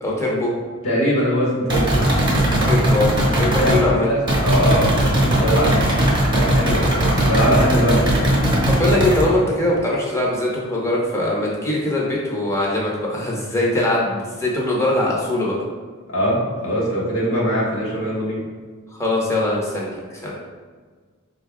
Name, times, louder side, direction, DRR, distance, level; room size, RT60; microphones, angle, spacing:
voice 1, 0.0-0.5 2.7-3.1 3.4-4.1 8.7-15.6 18.9-20.3, left 1 dB, 15° left, -4 dB, 0.7 m, -21 dB
voice 2, 0.8-2.0 3.5-4.9 5.1-5.8 6.3-8.2 16.1-16.3 16.6-18.4, equal, 70° left, -6 dB, 1.1 m, -21 dB
sound 1, 1.7-3.8 4.3-9.2, right 1 dB, 20° right, 0.8 m, -18 dB
5.1 x 2.2 x 3.5 m, 1.5 s
head